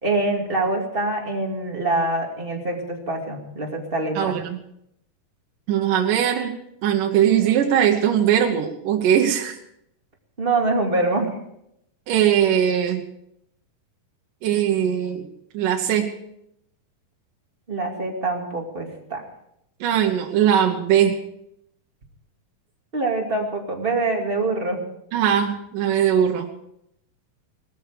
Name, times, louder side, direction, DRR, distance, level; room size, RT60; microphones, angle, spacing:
voice 1, 0.0-4.3 10.4-11.4 17.7-19.2 22.9-24.8, right 2 dB, 20° right, 1 dB, 2.1 m, -24 dB
voice 2, 4.2-4.6 5.7-6.5 6.8-9.6 12.1-13.0 14.4-15.3 15.5-16.1 19.8-21.2 25.1-26.5, right 9 dB, 75° right, 2 dB, 2.6 m, -20 dB
19.5 x 14.0 x 5.0 m, 0.78 s
omnidirectional pair, 4.0 m